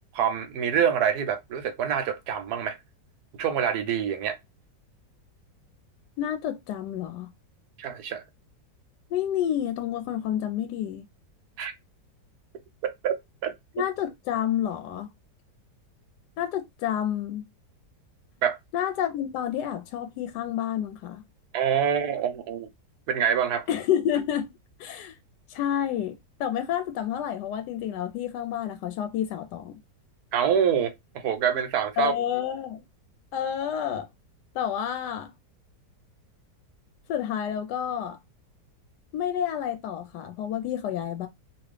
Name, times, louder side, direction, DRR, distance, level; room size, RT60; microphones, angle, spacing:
voice 1, 0.1-2.8 3.4-4.4 7.8-8.2 11.6-11.7 12.8-13.1 13.4-13.8 18.4-18.6 21.5-22.7 23.1-23.7 30.3-32.1, right 8 dB, 70° right, 1.1 m, -26 dB
voice 2, 6.2-7.3 9.1-11.0 13.7-15.1 16.4-17.4 18.7-21.2 23.7-24.5 24.8-25.2 25.5-26.1 26.4-29.8 32.0-32.8 33.3-34.1 34.5-35.3 37.1-38.2 39.1-41.3, left 10 dB, 75° left, 1.1 m, -29 dB
2.9 x 2.5 x 3.2 m
omnidirectional pair, 1.9 m